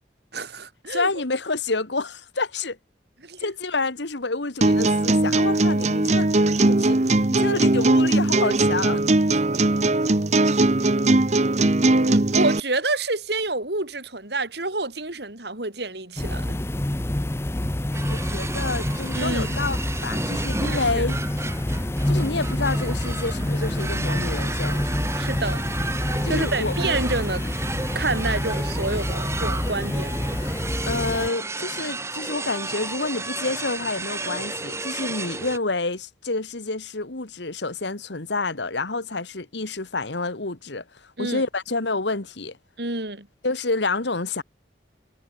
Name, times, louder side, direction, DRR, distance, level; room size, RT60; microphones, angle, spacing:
voice 1, 0.3-1.1 3.2-3.5 9.5-9.6 11.9-16.6 19.1-19.5 20.6-21.0 25.2-25.6 26.3-27.5 27.9-30.5 41.2-41.4 42.8-43.3, right 2 dB, 65° right, 4.0 m, -28 dB
voice 2, 0.9-2.8 3.4-6.3 6.7-7.0 7.3-9.0 18.1-19.8 20.0-21.2 22.1-24.9 26.2-26.7 30.9-40.8 41.2-42.6 43.4-44.4, left 3 dB, 75° left, 1.7 m, -28 dB
sound 1, 4.6-12.6, right 2 dB, 35° right, 0.9 m, -19 dB
sound 2, 16.2-31.3, left 1 dB, 15° left, 0.6 m, -27 dB
sound 3, 17.9-35.6, right 3 dB, 15° right, 1.3 m, -33 dB
head